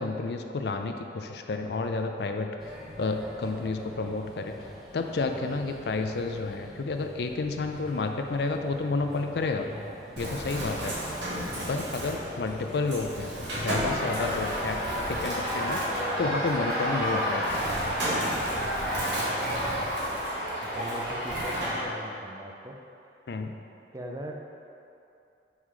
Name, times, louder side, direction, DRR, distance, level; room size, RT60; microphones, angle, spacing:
voice 1, 0.0-2.5 3.0-4.5 4.9-9.7 10.2-11.0 11.7-14.8 15.1-15.8 16.2-17.5 23.3-23.6, left 3 dB, 65° left, 5 dB, 0.4 m, -30 dB
Male speech man speaking / Child speech kid speaking / Chatter, 2.6-19.9, left 1 dB, ahead, 0.9 m, -44 dB
Bird, 10.2-21.7, right 1 dB, 85° right, 1.6 m, -35 dB
sound 1, 13.8-21.8, equal, 60° right, 1.5 m, -31 dB
voice 2, 20.4-22.8 23.9-24.4, equal, 20° right, 1 dB, 0.5 m, -40 dB
5.6 x 4.9 x 4.8 m, 2.7 s
head